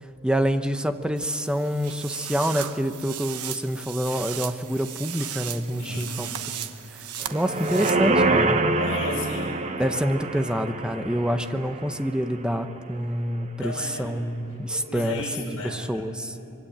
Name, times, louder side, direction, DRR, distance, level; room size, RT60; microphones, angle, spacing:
voice 1, 0.2-6.3 7.3-8.6 9.8-13.7 14.0-15.2 15.7-16.3, equal, 5° right, 8 dB, 0.9 m, -27 dB
sound 1, 1.2-7.9, right 10 dB, 80° right, 1.2 m, -36 dB
voice 2, 5.8-6.4 6.8-6.9 8.8-10.0 13.6-14.2 14.7-16.4, left 2 dB, 65° left, -1 dB, 7.8 m, -34 dB
sound 2, 7.2-12.6 13.0-13.1, right 2 dB, 30° right, 1.1 m, -26 dB
24.5 x 24.0 x 8.8 m, 2.6 s
head